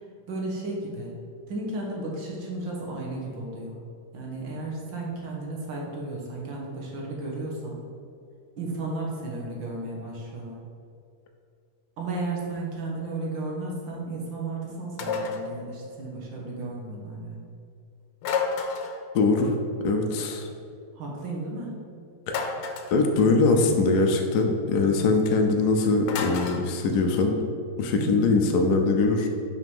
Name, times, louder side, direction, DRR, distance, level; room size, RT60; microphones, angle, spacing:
voice 1, 0.3-1.2 1.5-3.8 4.1-7.8 8.6-10.6 12.0-17.5 21.0-21.8 24.8-25.0 27.9-28.5, right 2 dB, 65° right, -2 dB, 1.9 m, -34 dB
sound 1, 15.0-15.5 18.2-19.0 22.3-23.0 26.1-26.6, left 5 dB, 90° left, 1.6 m, -30 dB
voice 2, 19.1-19.5 19.8-20.5 22.3-22.5 22.9-27.5 27.8-29.3, left 3 dB, 65° left, 3 dB, 1.0 m, -22 dB
5.8 x 4.9 x 5.3 m, 2.4 s
omnidirectional pair, 2.3 m